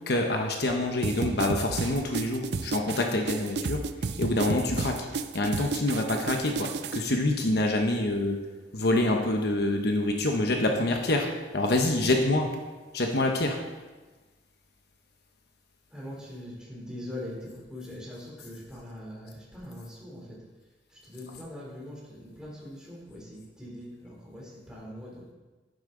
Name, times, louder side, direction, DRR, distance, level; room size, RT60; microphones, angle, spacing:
voice 1, 0.1-3.8 4.2-5.1 5.3-8.4 8.7-11.3 11.5-12.5 12.9-13.6, left 2 dB, 60° left, 3 dB, 1.0 m, -26 dB
sound 1, 1.0-7.0, right 4 dB, 60° right, 0.5 m, -32 dB
voice 2, 15.9-20.4 20.9-25.2, left 1 dB, 5° right, -5 dB, 3.2 m, -42 dB
10.5 x 10.0 x 3.9 m, 1.2 s
head